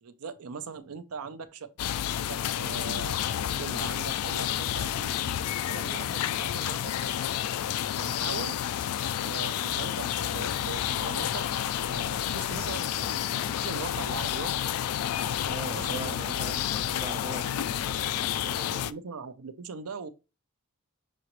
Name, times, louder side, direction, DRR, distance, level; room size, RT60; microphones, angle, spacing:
voice 1, 0.0-1.7 2.1-7.1 8.0-8.6 9.2-11.5 11.8-14.5 15.7-16.2 18.8-20.1, right 5 dB, 75° right, 0.6 m, -41 dB
sound 1, 1.8-18.9, left 10 dB, 85° left, 0.3 m, -30 dB
voice 2, 15.5-18.9, right 2 dB, 30° right, 0.8 m, -41 dB
6.2 x 2.9 x 3.0 m
head